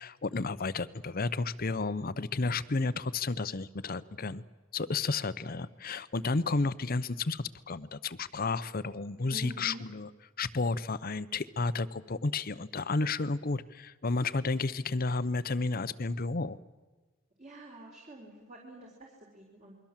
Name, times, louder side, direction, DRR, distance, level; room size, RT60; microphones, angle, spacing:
voice 1, 0.0-4.4 4.7-10.1 10.4-16.6, left 3 dB, 45° left, 15 dB, 0.8 m, -32 dB
voice 2, 9.3-9.9 17.4-19.8, right 1 dB, 35° right, -1 dB, 3.9 m, -47 dB
28.5 x 22.5 x 7.4 m, 1.3 s
head